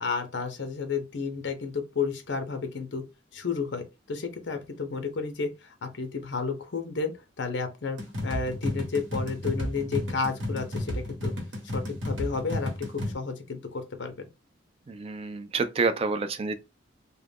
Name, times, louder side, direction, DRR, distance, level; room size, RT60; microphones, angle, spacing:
voice 1, 0.0-3.0 3.3-7.1 7.4-11.3 11.7-14.3, left 4 dB, 65° left, 0.6 m, -32 dB
sound 1, 8.0-13.1, left 1 dB, 75° right, 1.2 m, -32 dB
voice 2, 14.9-16.6, right 4 dB, 30° right, 0.3 m, -28 dB
2.4 x 2.2 x 3.3 m
head